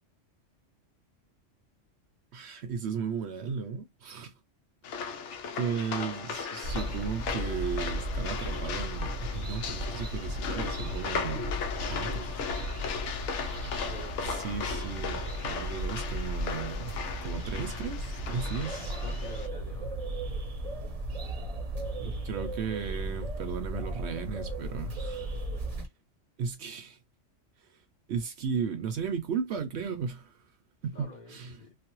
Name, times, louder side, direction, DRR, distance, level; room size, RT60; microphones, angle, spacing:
voice 1, 2.3-4.3 5.6-11.5 11.9-12.3 14.3-16.9 17.2-19.0 22.0-25.3 26.4-27.0 28.1-30.4 30.8-31.6, right 6 dB, 65° right, 0.8 m, -35 dB
sound 1, 4.8-19.5, left 6 dB, 75° left, 0.9 m, -37 dB
voice 2, 5.6-6.0 11.9-13.3 13.8-14.5 19.0-20.0 30.9-31.8, left 3 dB, 40° left, 0.9 m, -48 dB
sound 2, 6.6-25.9, right 1 dB, 35° right, 0.7 m, -35 dB
3.2 x 2.1 x 2.9 m
omnidirectional pair, 1.3 m